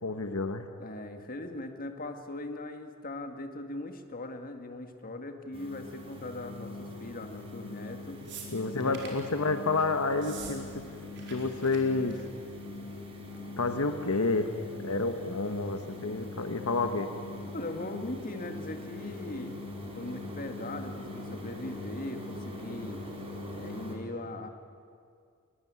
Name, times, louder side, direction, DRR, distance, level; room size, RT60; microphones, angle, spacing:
voice 1, 0.0-0.7 8.5-10.8 11.3-12.1 13.6-14.5 14.8-17.1, left 3 dB, 75° left, 7 dB, 1.3 m, -29 dB
voice 2, 0.8-8.2 8.8-9.2 17.5-19.6 19.9-23.0 23.5-24.5, left 2 dB, 40° left, 6 dB, 1.9 m, -40 dB
sound 1, 5.5-24.0, left 2 dB, 25° right, 4.0 m, -42 dB
sound 2, 8.3-9.3 10.1-10.6 10.8-11.4 11.6-11.8 12.1-12.4 13.3-13.4, right 6 dB, 55° right, 4.6 m, -45 dB
21.5 x 21.0 x 9.6 m, 2.3 s
head